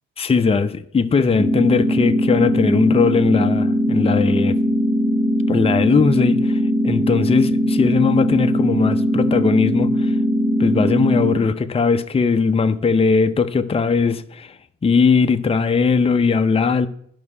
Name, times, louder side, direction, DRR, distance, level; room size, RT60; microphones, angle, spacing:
voice 1, 0.2-4.6 5.5-10.2 10.6-14.5 14.8-16.9, left 5 dB, 20° left, 0.5 m, -19 dB
sound 1, 1.4-11.4, equal, 10° right, 1.5 m, -20 dB
10.5 x 5.5 x 4.8 m
cardioid pair, 90°, 30 cm